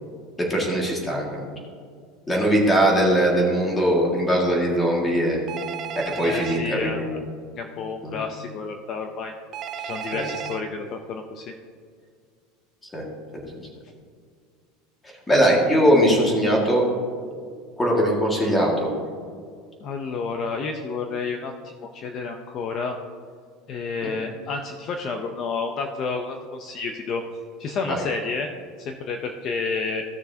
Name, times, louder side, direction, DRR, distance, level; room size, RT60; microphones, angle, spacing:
voice 1, 0.4-1.5 2.3-5.4 6.2-7.2 8.0-8.2 10.1-10.3 12.9-13.1 13.4-13.7 15.0-16.8 17.8-18.9 24.0-24.1 27.9-28.0, equal, 10° left, -2 dB, 1.9 m, -21 dB
Telephone, 5.5-6.6 9.5-10.6, right 8 dB, 30° right, 0.5 m, -33 dB
voice 2, 6.2-7.2 7.6-9.3 9.8-11.5 19.8-23.0 23.7-27.2 27.6-28.5 28.8-30.0, left 4 dB, 30° left, 4 dB, 0.6 m, -30 dB
16.0 x 6.5 x 2.8 m, 2.1 s
supercardioid pair, 165°, 0 cm